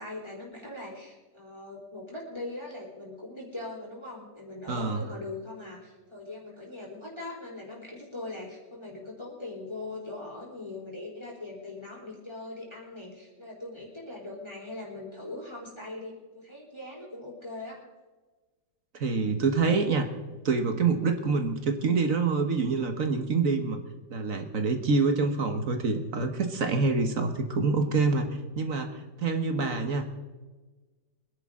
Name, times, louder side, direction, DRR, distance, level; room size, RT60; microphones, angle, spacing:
voice 1, 0.0-17.8, left 2 dB, 15° left, -3 dB, 3.9 m, -41 dB
voice 2, 4.7-5.0 18.9-20.1 20.4-23.8 24.1-28.3 28.5-30.2, right 4 dB, 50° right, 6 dB, 1.5 m, -26 dB
24.0 x 10.5 x 3.7 m, 1.2 s
omnidirectional pair, 1.9 m